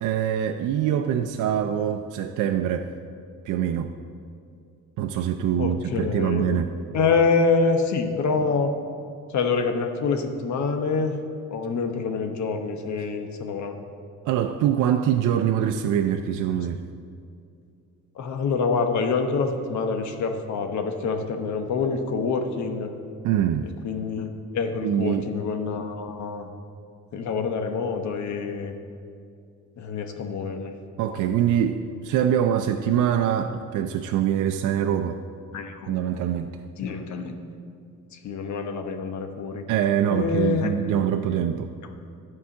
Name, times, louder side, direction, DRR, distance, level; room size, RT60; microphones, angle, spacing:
voice 1, 0.0-2.9 3.4-3.9 5.0-6.7 14.3-16.8 23.2-23.7 24.8-25.3 31.0-35.2 35.9-36.5 39.7-41.7, right 9 dB, 80° right, 6 dB, 0.5 m, -24 dB
voice 2, 5.6-6.4 6.9-8.7 9.3-11.2 11.5-13.8 18.1-22.9 23.6-24.3 24.5-26.5 27.1-28.7 29.8-30.7 35.5-36.0 36.8-37.3 38.1-39.6 40.1-40.8 41.3-41.4, left 4 dB, 70° left, 5 dB, 1.1 m, -26 dB
11.0 x 4.8 x 7.2 m, 2.4 s
cardioid pair, 90°, 30 cm